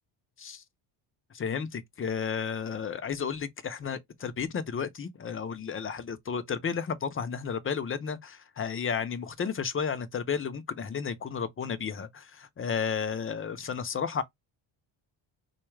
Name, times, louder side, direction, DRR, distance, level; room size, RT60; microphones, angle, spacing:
voice 1, 1.3-14.2, left 6 dB, 30° left, 0.6 m, -33 dB
3.9 x 2.4 x 3.2 m
cardioid pair, 105°, 47 cm